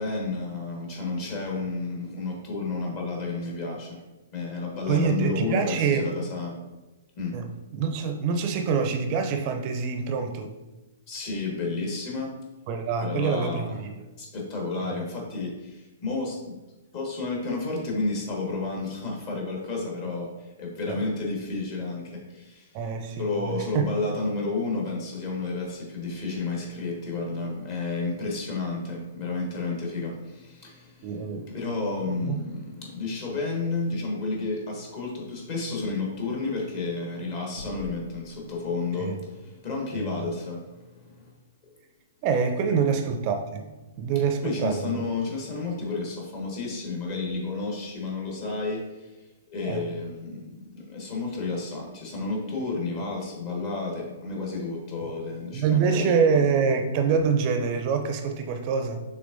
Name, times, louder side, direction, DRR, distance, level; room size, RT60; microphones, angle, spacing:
voice 1, 0.0-4.0 4.3-6.6 7.2-7.3 11.1-12.3 13.0-13.8 14.2-16.6 16.9-22.7 23.2-41.3 42.7-42.8 43.8-44.0 44.4-49.2 49.5-56.1, left 3 dB, 40° left, -1 dB, 1.5 m, -31 dB
voice 2, 4.9-6.1 7.3-10.5 12.7-13.9 14.8-15.0 20.9-21.0 22.7-23.9 31.0-31.5 32.2-32.4 39.0-39.2 39.9-40.3 42.2-43.6 44.0-45.0 49.6-49.8 55.5-59.0, right 6 dB, 40° right, 6 dB, 0.4 m, -26 dB
sound 1, 37.6-39.2, left 3 dB, 85° left, 0.7 m, -45 dB
5.9 x 3.5 x 2.5 m, 1.1 s
figure-of-eight pair, 115°, 0 cm